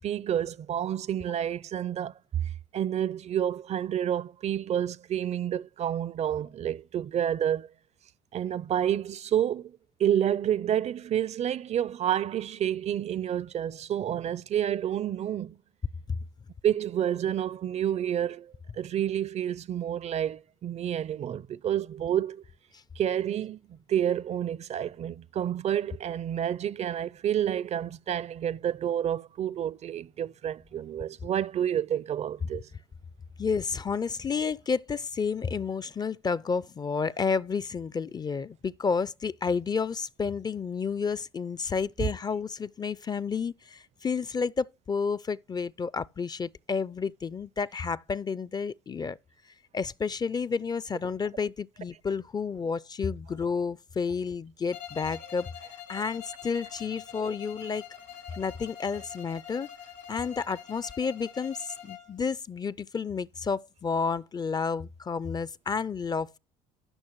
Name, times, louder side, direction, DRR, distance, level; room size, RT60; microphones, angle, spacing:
voice 1, 0.0-2.1 2.7-7.7 8.3-9.7 10.0-15.6 16.6-22.4 23.0-23.6 23.9-32.7, right 10 dB, 45° right, 0.4 m, -29 dB
voice 2, 33.4-49.2 49.7-55.5 55.9-57.8 58.4-59.7 60.1-66.4, left 5 dB, 25° left, 0.4 m, -31 dB
Bowed string instrument, 54.7-62.2, left 9 dB, 75° left, 2.4 m, -45 dB
14.0 x 6.2 x 3.1 m
supercardioid pair, 70°, 16 cm